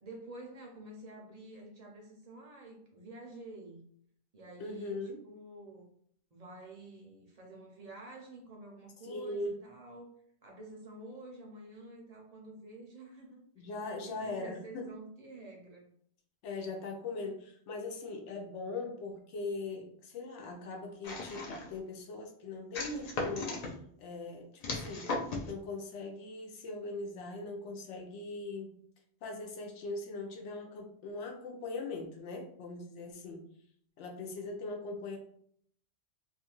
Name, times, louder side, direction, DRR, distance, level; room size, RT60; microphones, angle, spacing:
voice 1, 0.0-3.8 4.3-5.0 5.2-5.9 6.3-10.1 10.4-13.7 14.0-15.9, right 2 dB, 50° right, 0 dB, 0.5 m, -49 dB
voice 2, 4.6-5.2 9.0-9.6 13.6-14.9 16.4-23.6 24.0-25.1 25.4-28.7 29.2-33.4 34.0-35.2, left 3 dB, 85° left, 1 dB, 0.9 m, -40 dB
sound 1, 21.0-21.8 22.7-23.7 24.6-25.5, left 3 dB, 60° left, 0.4 m, -37 dB
2.5 x 2.3 x 2.9 m, 0.65 s
omnidirectional pair, 1.2 m